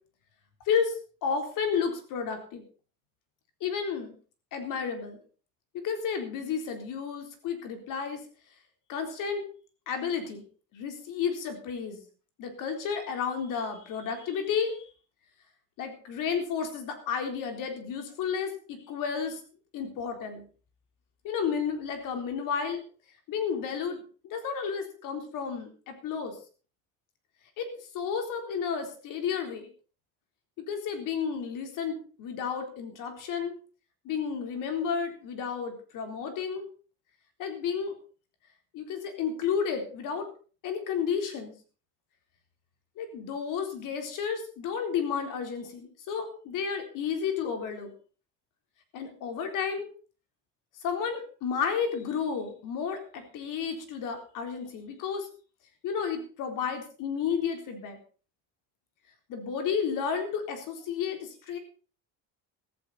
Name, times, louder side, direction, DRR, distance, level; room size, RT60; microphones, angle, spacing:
voice 1, 0.7-2.6 3.6-4.1 4.5-5.2 5.8-8.2 8.9-9.4 9.9-10.4 10.7-12.0 12.4-14.8 15.8-19.4 19.7-20.4 21.2-22.8 23.3-26.4 27.6-29.7 30.6-33.5 34.0-36.7 37.4-37.9 38.7-40.3 40.6-41.5 43.0-47.9 48.9-49.9 50.8-55.3 55.8-58.0 59.3-61.6, left 6 dB, 65° left, 6 dB, 3.9 m, -32 dB
15.5 x 14.5 x 4.2 m, 0.39 s
cardioid pair, 155°, 34 cm